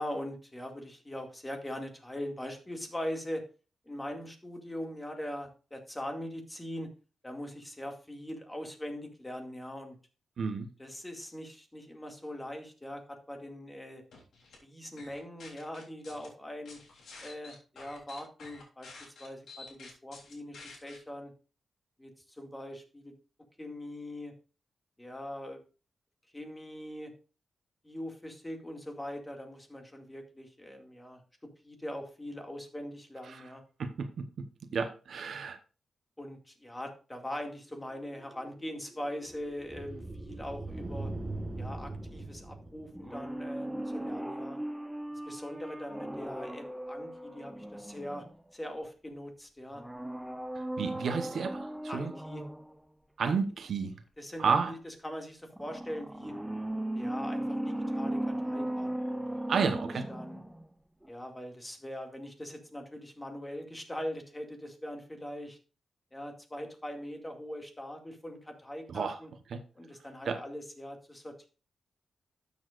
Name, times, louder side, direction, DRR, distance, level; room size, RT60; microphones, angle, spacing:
voice 1, 0.0-3.4 3.9-6.9 7.2-10.0 10.8-14.0 14.6-16.8 17.2-18.9 19.2-21.3 22.0-23.1 23.6-24.3 25.0-25.6 26.3-27.1 27.8-33.6 36.2-41.1 41.6-44.6 45.3-48.3 48.5-49.8 51.9-52.4 53.2-53.4 54.2-56.3 56.9-59.8 60.1-60.4 61.1-65.6 66.1-69.3 69.8-71.5, left 1 dB, 15° left, 2.2 m, -41 dB
voice 2, 10.4-10.7 33.3-33.4 33.8-34.5 34.7-35.6 50.5-52.1 53.2-53.9 54.4-54.7 59.5-60.1 68.9-69.2 69.5-69.6 70.2-70.4, right 5 dB, 70° right, 0.9 m, -31 dB
sound 1, 14.1-14.6 15.0-16.3 16.7-21.0, left 3 dB, 80° left, 3.3 m, -50 dB
sound 2, 37.9-43.5, right 2 dB, 30° right, 1.4 m, -41 dB
sound 3, 42.9-48.7 49.7-52.8 55.5-60.7 61.0-61.1, right 1 dB, 5° right, 0.7 m, -37 dB
12.5 x 7.1 x 2.5 m
cardioid pair, 80°, 0 cm